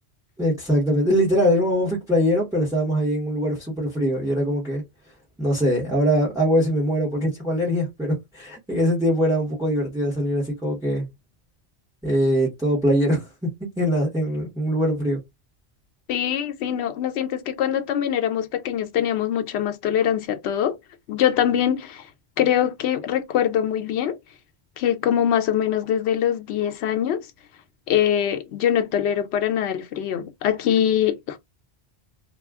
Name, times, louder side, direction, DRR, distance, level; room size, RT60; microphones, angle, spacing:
voice 1, 0.4-4.8 5.4-11.1 12.0-13.3 13.8-15.2, equal, 5° right, 1.0 m, -22 dB
voice 2, 16.1-20.8 21.1-22.1 22.4-24.2 24.8-27.3 27.9-31.4, left 10 dB, 80° left, 0.8 m, -23 dB
2.4 x 2.2 x 3.4 m
omnidirectional pair, 1.1 m